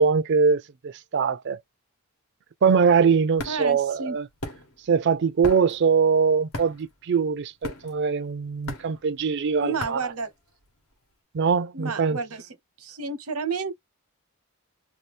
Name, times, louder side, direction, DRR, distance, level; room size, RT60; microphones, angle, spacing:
voice 1, 0.0-1.6 2.6-4.3 4.9-10.1 11.3-12.2, right 5 dB, 50° right, 0.4 m, -22 dB
sound 1, 2.8-10.9, left 1 dB, 75° left, 1.0 m, -39 dB
voice 2, 3.5-4.2 9.6-10.3 11.7-12.5 12.8-13.7, right 4 dB, 90° right, 0.9 m, -31 dB
2.6 x 2.3 x 3.5 m
head